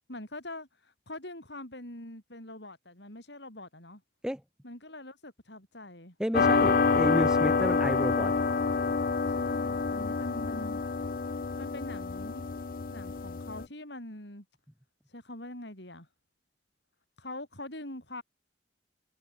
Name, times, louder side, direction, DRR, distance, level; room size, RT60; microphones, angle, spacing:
voice 1, 0.1-4.0 4.6-6.2 9.3-10.8 11.6-12.5 12.9-14.5 15.1-16.1 17.2-18.2, left 1 dB, 65° left, 8.0 m, -43 dB
voice 2, 6.2-8.3, equal, 5° right, 0.8 m, -31 dB
sound 1, 6.3-13.7, left 4 dB, 45° left, 0.5 m, -27 dB
head